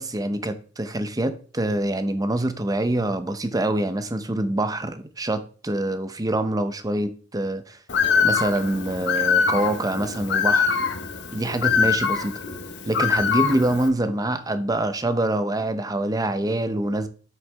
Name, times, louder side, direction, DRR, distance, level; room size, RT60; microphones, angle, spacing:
voice 1, 0.0-7.8 8.2-10.8 11.3-12.3 12.9-17.1, right 1 dB, 20° right, 0.7 m, -25 dB
Bird, 7.9-13.9, left 6 dB, 60° left, 1.1 m, -23 dB
7.9 x 6.4 x 3.5 m
head